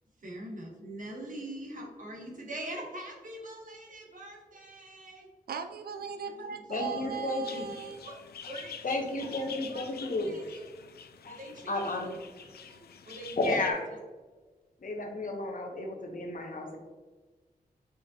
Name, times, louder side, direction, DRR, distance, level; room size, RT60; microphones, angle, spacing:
voice 1, 0.2-5.3 6.2-7.1 8.0-8.2 8.5-8.8 9.4-9.9 10.3-10.6 11.3-11.9 12.4-13.7, right 1 dB, 55° right, -1 dB, 1.3 m, -44 dB
voice 2, 5.5-8.0, right 6 dB, 80° right, 8 dB, 0.4 m, -38 dB
voice 3, 6.7-7.7 8.8-10.3 11.2-11.4 11.7-12.1 13.4-13.9 14.8-16.8, left 2 dB, 60° left, 2 dB, 1.0 m, -32 dB
sound 1, 7.4-13.7, left 7 dB, 80° left, 0.4 m, -46 dB
5.1 x 3.6 x 2.8 m, 1.3 s
cardioid pair, 60°, 16 cm